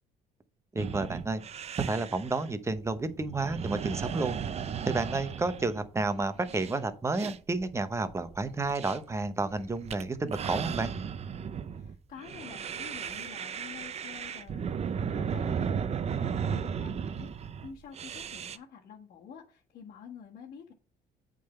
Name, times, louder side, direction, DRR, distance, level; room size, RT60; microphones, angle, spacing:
voice 1, 0.7-1.4 1.8-4.4 4.8-10.9, right 3 dB, 15° right, 10 dB, 0.9 m, -31 dB
sound 1, 0.8-18.6, right 7 dB, 40° right, 0.6 m, -35 dB
voice 2, 11.7-20.7, left 6 dB, 55° left, -4 dB, 1.6 m, -48 dB
8.4 x 3.9 x 5.6 m, 0.36 s
cardioid pair, 110°, 17 cm